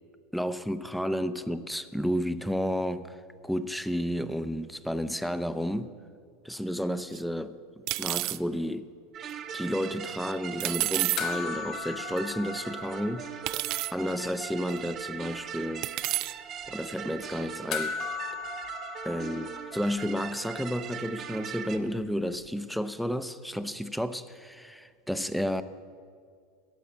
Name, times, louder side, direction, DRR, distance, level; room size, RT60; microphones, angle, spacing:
voice 1, 0.3-5.9 6.4-8.9 9.5-13.3 13.9-15.9 16.7-18.0 19.0-25.6, equal, ahead, 0.7 m, -32 dB
sound 1, 7.1-7.2 7.9-8.4 10.6-11.2 12.2-12.3 13.5-13.9 14.8-14.9 15.8-16.3, right 18 dB, 55° right, 0.4 m, -29 dB
sound 2, 9.1-21.8, right 8 dB, 40° right, 1.0 m, -40 dB
sound 3, 11.2-13.8 14.1-14.2 17.7-20.3 22.5-22.6, left 6 dB, 50° left, 1.5 m, -37 dB
14.5 x 8.1 x 8.7 m
hypercardioid pair, 90°, 0 cm